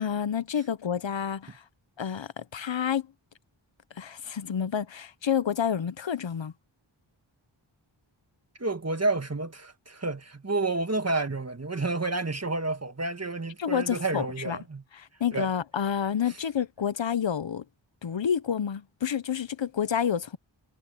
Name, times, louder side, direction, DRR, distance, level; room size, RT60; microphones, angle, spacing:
voice 1, 0.0-1.6 2.0-3.1 4.0-6.5 13.6-14.6 14.9-17.6 18.0-20.4, left 8 dB, 70° left, 0.8 m, -29 dB
voice 2, 8.6-14.8 15.3-15.5, right 3 dB, 30° right, 1.9 m, -30 dB
wide cardioid pair, 60°, 47 cm